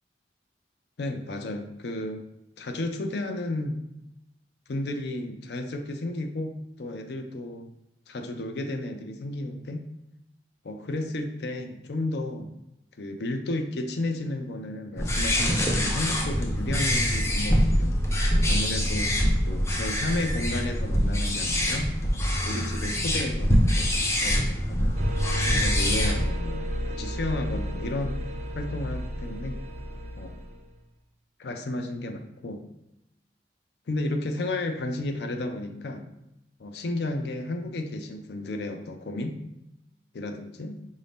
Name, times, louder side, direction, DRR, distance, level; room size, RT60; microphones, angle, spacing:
voice 1, 1.0-2.3 2.6-3.8 4.7-6.5 6.8-7.7 8.1-9.8 10.6-12.5 13.0-18.0 18.5-21.9 22.4-25.0 25.5-28.2 28.5-29.6 30.2-30.4 31.4-32.7 33.9-36.1 36.6-39.4 40.1-40.8, left 2 dB, 65° left, 6 dB, 0.5 m, -33 dB
sound 1, 15.0-26.3, equal, 15° left, 0.5 m, -24 dB
sound 2, 25.0-30.7, equal, 40° right, 0.5 m, -32 dB
4.8 x 2.6 x 3.5 m, 0.86 s
head